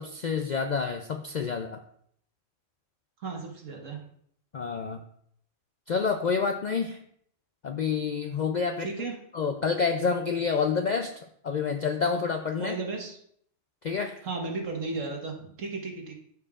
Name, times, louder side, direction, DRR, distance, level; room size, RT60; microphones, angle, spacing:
voice 1, 0.0-1.8 4.5-5.0 5.9-7.0 7.6-8.9 9.3-12.8 13.8-14.2, left 5 dB, 65° left, 5 dB, 0.4 m, -28 dB
voice 2, 3.2-4.0 8.8-9.2 12.6-13.2 14.2-16.1, right 3 dB, 80° right, 1 dB, 1.7 m, -34 dB
13.5 x 4.7 x 2.4 m, 0.67 s
omnidirectional pair, 1.3 m